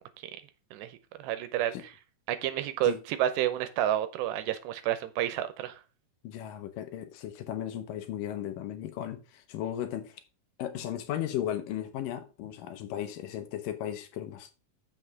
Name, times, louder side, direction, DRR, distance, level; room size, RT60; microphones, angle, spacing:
voice 1, 0.7-1.7 2.3-5.8, right 12 dB, 85° right, 2.9 m, -30 dB
voice 2, 6.2-10.2 10.6-14.5, left 11 dB, 75° left, 2.1 m, -36 dB
7.8 x 6.5 x 4.6 m
omnidirectional pair, 4.8 m